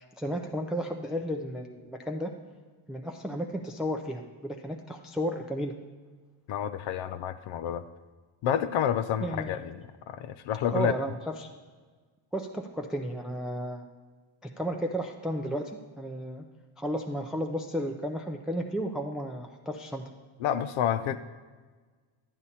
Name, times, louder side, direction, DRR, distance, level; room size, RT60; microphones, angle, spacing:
voice 1, 0.2-2.3 2.9-5.7 9.2-9.7 10.7-11.5 12.3-13.8 14.6-15.7 16.0-16.4 16.8-20.0, equal, ahead, 3 dB, 0.4 m, -33 dB
voice 2, 6.5-7.8 8.4-10.9 20.4-21.2, left 9 dB, 75° left, 11 dB, 0.6 m, -29 dB
12.0 x 8.6 x 4.2 m, 1.4 s
cardioid pair, 125°, 49 cm